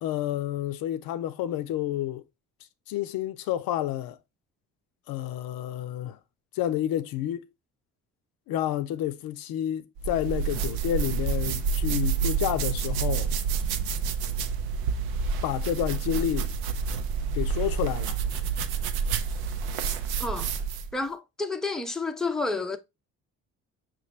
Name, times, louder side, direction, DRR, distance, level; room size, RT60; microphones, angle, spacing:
voice 1, 0.0-2.2 2.9-4.2 5.1-6.2 6.5-7.5 8.5-13.3 15.4-16.5 17.3-18.2, left 12 dB, 70° left, 0.6 m, -29 dB
sound 1, 10.0-20.9, right 6 dB, 85° right, 0.6 m, -28 dB
voice 2, 20.9-22.8, left 3 dB, ahead, 0.5 m, -30 dB
5.9 x 2.5 x 3.1 m
supercardioid pair, 65°, 36 cm